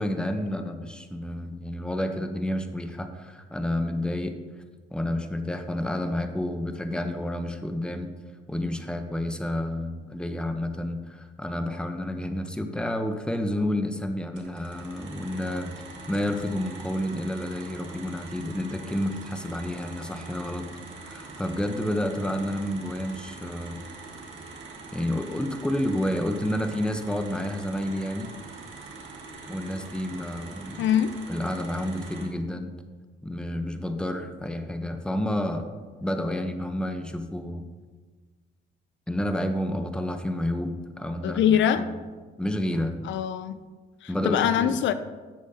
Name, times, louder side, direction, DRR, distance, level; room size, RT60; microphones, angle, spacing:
voice 1, 0.0-4.4 4.9-8.1 8.5-15.7 16.1-20.6 21.0-23.8 24.9-28.3 29.5-30.9 31.3-32.7 33.2-35.7 36.0-37.7 39.1-42.0 42.4-43.0 44.1-44.8, left 1 dB, 5° left, 7 dB, 0.7 m, -30 dB
sound 1, 14.4-32.3, right 3 dB, 75° right, 1.7 m, -43 dB
voice 2, 30.8-31.1 41.2-41.8 43.0-43.6 44.0-44.9, left 9 dB, 70° left, 12 dB, 0.4 m, -23 dB
10.5 x 7.1 x 2.8 m, 1.4 s
cardioid pair, 90°, 20 cm